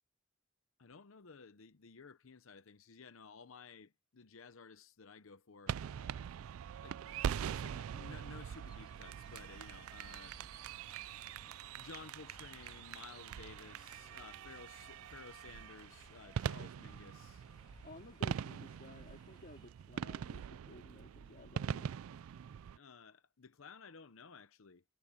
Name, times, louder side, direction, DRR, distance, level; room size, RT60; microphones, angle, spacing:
voice 1, 0.8-6.3 6.8-7.0 7.4-10.4 11.8-17.5 22.8-24.8, left 5 dB, 70° left, 0.8 m, -55 dB
sound 1, 5.7-22.8, right 8 dB, 80° right, 0.3 m, -43 dB
Chirp tweet, 7.0-19.7, left 1 dB, 20° left, 2.6 m, -64 dB
sound 2, 14.4-20.1, right 3 dB, 20° right, 6.3 m, -75 dB
voice 2, 17.8-21.9, left 1 dB, 45° left, 2.4 m, -55 dB
head